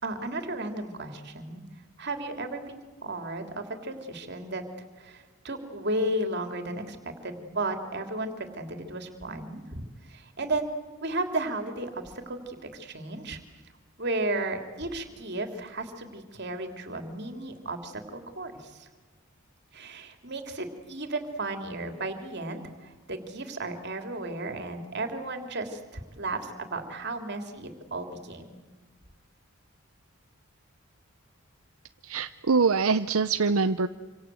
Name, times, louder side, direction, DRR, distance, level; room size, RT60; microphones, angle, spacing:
voice 1, 0.0-1.6 2.0-4.6 5.0-10.7 11.0-13.4 14.0-18.9 19.7-28.7, right 2 dB, 50° right, 5 dB, 3.5 m, -34 dB
voice 2, 32.0-33.9, right 4 dB, 75° right, 10 dB, 0.8 m, -24 dB
27.5 x 26.5 x 7.8 m, 1.3 s
head